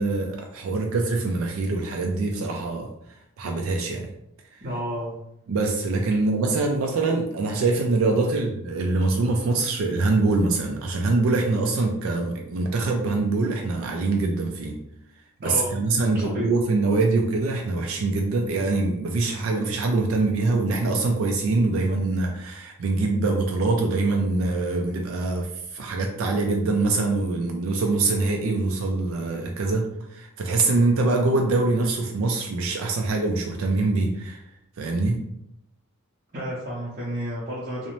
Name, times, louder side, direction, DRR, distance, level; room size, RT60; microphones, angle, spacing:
voice 1, 0.0-2.9 3.4-4.1 4.5-4.6 5.5-14.7 15.4-34.4 34.8-35.2, right 3 dB, 65° right, 2 dB, 0.3 m, -24 dB
voice 2, 4.6-5.2 15.4-15.7 16.1-16.5 36.3-37.9, equal, 40° right, -9 dB, 0.7 m, -31 dB
2.6 x 2.0 x 2.9 m, 0.79 s
head